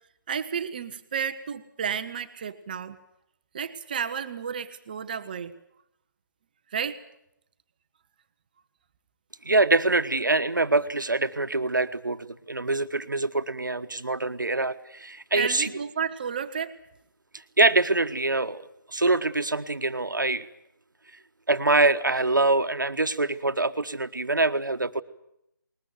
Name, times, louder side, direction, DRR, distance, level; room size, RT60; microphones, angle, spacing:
voice 1, 0.3-3.0 3.5-5.6 6.7-7.0 15.3-16.8, right 7 dB, 25° right, 10 dB, 0.9 m, -32 dB
voice 2, 9.4-15.7 17.3-20.5 21.5-25.0, right 2 dB, 70° right, 11 dB, 1.3 m, -24 dB
20.5 x 20.5 x 9.2 m, 0.79 s
figure-of-eight pair, 155°, 11 cm